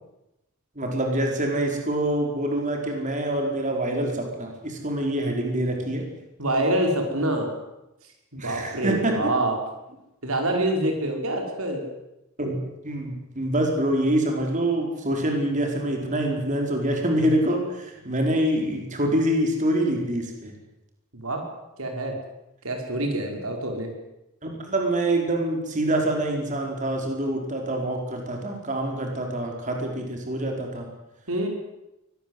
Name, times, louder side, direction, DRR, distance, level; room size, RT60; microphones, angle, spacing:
voice 1, 0.7-6.0 8.4-9.3 12.4-12.6 12.8-20.5 24.4-30.9, right 1 dB, 35° right, 2 dB, 5.0 m, -25 dB
voice 2, 6.4-7.5 8.3-9.5 10.2-11.8 21.1-21.4 21.8-22.2 22.6-23.9 31.3-31.5, right 1 dB, 85° right, 3 dB, 5.3 m, -26 dB
24.0 x 19.5 x 8.1 m, 0.91 s
head